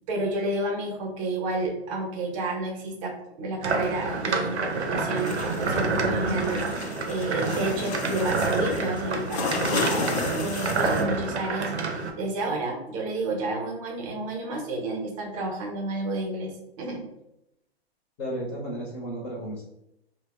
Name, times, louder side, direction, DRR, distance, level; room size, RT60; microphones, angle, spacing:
voice 1, 0.1-17.0, right 2 dB, 35° right, 1 dB, 0.6 m, -30 dB
sound 1, 3.6-12.1, right 3 dB, 90° right, 0.5 m, -28 dB
sound 2, 5.2-11.0, left 4 dB, 90° left, 0.5 m, -33 dB
voice 2, 18.2-19.6, right 1 dB, 30° left, -4 dB, 0.6 m, -33 dB
2.7 x 2.1 x 2.2 m, 0.84 s
hypercardioid pair, 125°, 32 cm